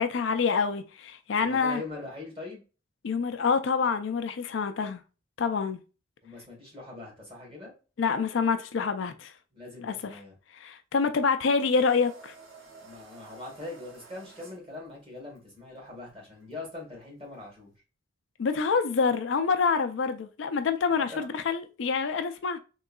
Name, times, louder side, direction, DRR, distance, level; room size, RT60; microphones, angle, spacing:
voice 1, 0.0-1.8 3.0-5.0 5.4-5.8 8.0-9.3 9.8-10.1 10.5-12.3 18.4-22.6, left 5 dB, 70° left, 0.4 m, -27 dB
voice 2, 1.4-2.6 6.2-7.7 9.5-10.3 12.8-17.7 20.9-21.3, left 2 dB, 30° right, 2.0 m, -42 dB
sound 1, 11.7-17.8, right 4 dB, 90° right, 1.1 m, -53 dB
3.7 x 3.1 x 2.3 m
head